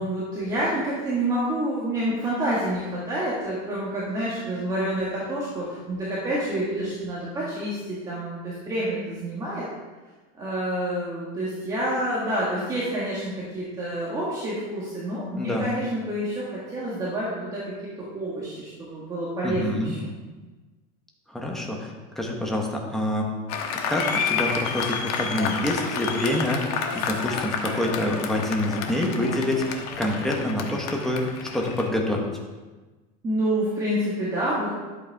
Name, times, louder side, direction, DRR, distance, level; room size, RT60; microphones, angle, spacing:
voice 1, 0.0-9.6 10.4-17.7 18.1-20.1 33.2-34.7, right 1 dB, 20° right, -7 dB, 1.8 m, -28 dB
voice 2, 15.3-15.7 19.4-19.9 21.3-23.3 23.9-32.3, left 1 dB, ahead, -1 dB, 1.2 m, -27 dB
Applause, 23.5-31.9, left 6 dB, 85° left, 1.3 m, -30 dB
11.5 x 8.2 x 3.6 m, 1.3 s
cardioid pair, 165°, 19 cm